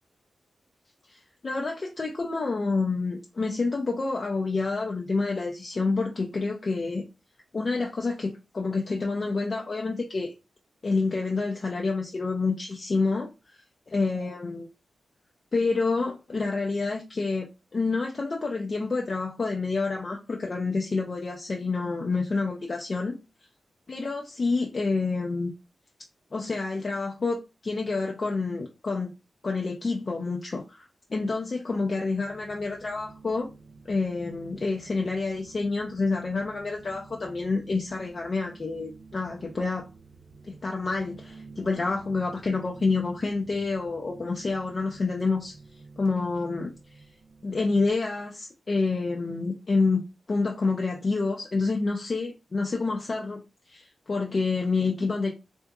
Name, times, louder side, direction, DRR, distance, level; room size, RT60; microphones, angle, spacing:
voice 1, 1.1-7.0 7.5-10.3 10.8-13.3 13.9-14.7 15.5-17.5 17.7-23.2 23.9-25.5 26.3-29.1 29.4-33.5 33.9-39.9 40.4-45.6 46.0-46.7 47.4-55.3, left 3 dB, 35° left, 0.4 m, -28 dB
sound 1, 31.7-47.9, right 3 dB, 55° right, 0.6 m, -50 dB
3.4 x 2.8 x 2.3 m
wide cardioid pair, 180°, 0 cm